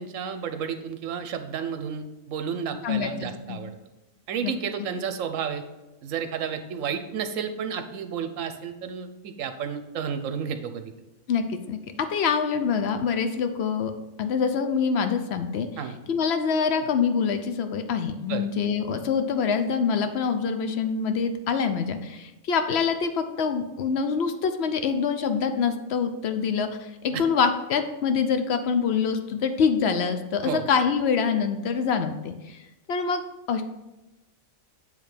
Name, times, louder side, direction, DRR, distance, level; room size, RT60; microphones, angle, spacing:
voice 1, 0.0-3.8 4.3-5.6 6.0-10.9 15.8-16.0 18.3-18.4 27.1-27.2 30.4-30.7, right 7 dB, 70° right, 8 dB, 1.0 m, -32 dB
voice 2, 2.8-3.6 4.4-4.5 11.3-13.9 14.2-15.7 16.1-32.6 32.9-33.2 33.5-33.6, left 6 dB, 60° left, 8 dB, 0.8 m, -25 dB
8.8 x 3.4 x 5.0 m, 1.0 s
omnidirectional pair, 1.4 m